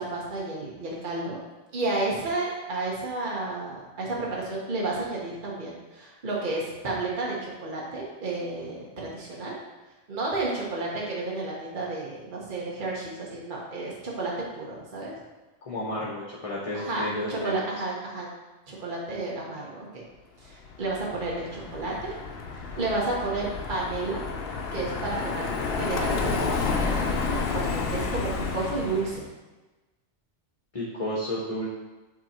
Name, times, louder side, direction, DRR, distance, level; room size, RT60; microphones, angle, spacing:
voice 1, 0.0-1.4 1.7-9.5 10.1-15.1 16.7-18.3 18.7-20.0 20.4-22.1 22.8-24.2 24.7-25.5 25.7-29.2, right 2 dB, 45° right, -4 dB, 1.3 m, -31 dB
voice 2, 15.6-17.5 30.7-31.7, left 1 dB, 30° left, -5 dB, 1.0 m, -32 dB
Car passing by, 20.7-29.2, left 4 dB, 60° left, 0.8 m, -30 dB
8.1 x 3.0 x 4.3 m, 1.2 s
omnidirectional pair, 1.2 m